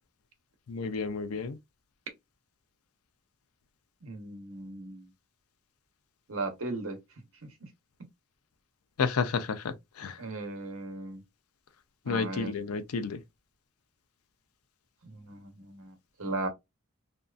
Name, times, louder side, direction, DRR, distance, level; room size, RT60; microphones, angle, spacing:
voice 1, 0.7-1.6 9.0-10.2 12.1-13.2, left 5 dB, 90° left, 0.5 m, -31 dB
voice 2, 4.0-5.1 6.3-7.0 10.2-11.2 12.1-12.5 15.0-16.5, right 2 dB, 65° right, 0.9 m, -37 dB
2.6 x 2.3 x 2.4 m
head